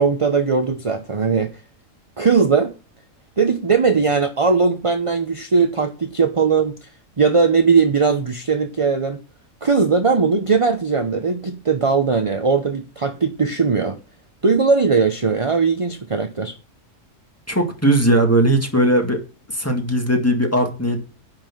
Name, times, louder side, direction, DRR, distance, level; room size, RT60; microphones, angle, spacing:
voice 1, 0.0-1.5 2.2-2.7 3.4-6.9 7.2-9.2 9.6-14.0 14.4-16.5, right 5 dB, 30° right, 0.7 m, -19 dB
voice 2, 17.5-19.2 19.5-21.0, right 1 dB, 10° left, 2.1 m, -18 dB
10.5 x 5.9 x 7.4 m
omnidirectional pair, 1.5 m